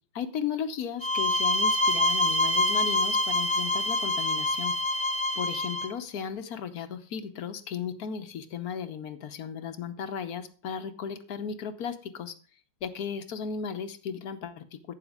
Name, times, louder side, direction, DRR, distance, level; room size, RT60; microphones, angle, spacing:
voice 1, 0.1-4.7 5.4-12.3 12.8-14.9, left 7 dB, 55° left, 9 dB, 1.3 m, -35 dB
sound 1, 1.0-5.9, left 1 dB, 15° left, 1.0 m, -26 dB
12.5 x 8.9 x 3.5 m, 0.39 s
omnidirectional pair, 2.2 m